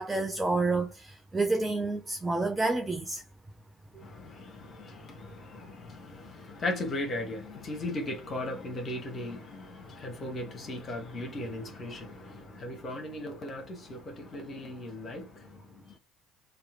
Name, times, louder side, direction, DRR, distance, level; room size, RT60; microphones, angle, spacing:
voice 1, 0.0-3.2, right 3 dB, 10° right, 0.5 m, -29 dB
voice 2, 3.9-16.0, left 1 dB, 35° left, 1.1 m, -37 dB
3.0 x 2.4 x 3.6 m
figure-of-eight pair, 60°, 0 cm